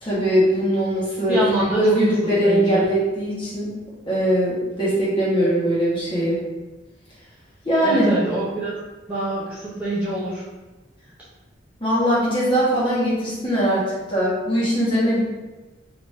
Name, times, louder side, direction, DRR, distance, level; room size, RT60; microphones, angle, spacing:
voice 1, 0.0-1.4 1.7-3.7 4.1-6.4 7.6-8.2 11.8-13.8 14.1-15.2, equal, 25° left, -9 dB, 1.3 m, -20 dB
voice 2, 1.3-2.0 2.4-2.8 7.8-8.8 9.1-10.4, right 1 dB, 10° right, -11 dB, 0.8 m, -25 dB
3.5 x 2.8 x 2.7 m, 1.1 s
head